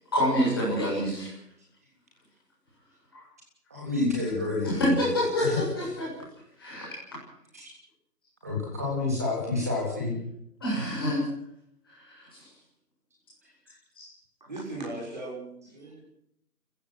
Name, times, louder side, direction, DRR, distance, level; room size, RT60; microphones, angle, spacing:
voice 1, 0.1-1.4 3.1-3.3 4.6-6.1 6.6-6.9 10.6-11.3 11.8-12.5 14.0-14.1, equal, 15° left, -6 dB, 7.2 m, -27 dB
voice 2, 3.7-4.9 5.4-5.6 7.5-7.7 8.4-10.1, left 3 dB, 10° right, -2 dB, 3.3 m, -29 dB
voice 3, 14.4-16.0, right 2 dB, 25° right, -4 dB, 6.2 m, -38 dB
30.0 x 15.0 x 6.3 m, 0.73 s
figure-of-eight pair, 180°, 48 cm